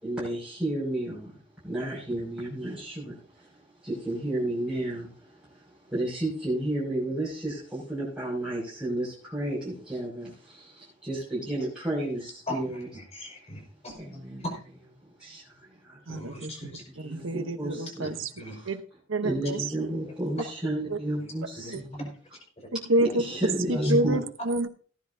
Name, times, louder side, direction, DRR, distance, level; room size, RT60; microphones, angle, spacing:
voice 1, 0.0-1.3 1.6-3.5 3.8-12.9 14.0-14.5 15.2-16.0 16.4-16.5 16.9-18.1 18.5-18.7 19.2-22.1 23.2-24.2, right 1 dB, 5° right, -9 dB, 6.1 m, -32 dB
voice 2, 12.5-14.0 14.4-14.5 16.1-16.8 18.4-18.5 21.2-21.3 21.6-21.7 22.6-22.7 23.1-23.2 23.7-23.9, left 1 dB, 35° left, 2 dB, 5.1 m, -39 dB
voice 3, 16.1-16.5 17.0-18.3 18.6-18.8 19.1-20.0 20.9-21.0 21.7-21.8 22.7-24.7, right 2 dB, 85° right, 8 dB, 1.0 m, -28 dB
18.0 x 10.5 x 2.7 m, 0.41 s
head